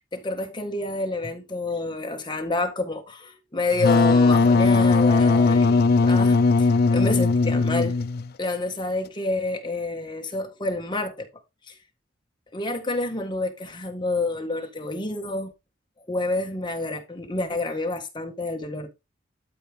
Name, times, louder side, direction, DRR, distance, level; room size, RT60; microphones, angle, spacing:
voice 1, 0.1-8.0 8.4-11.3 11.7-11.8 12.5-15.5 16.1-18.9, left 2 dB, 25° left, 1.8 m, -28 dB
Wind instrument woodwind instrument, 3.7-8.3, left 3 dB, 50° left, 0.5 m, -18 dB
12.5 x 4.5 x 3.6 m
head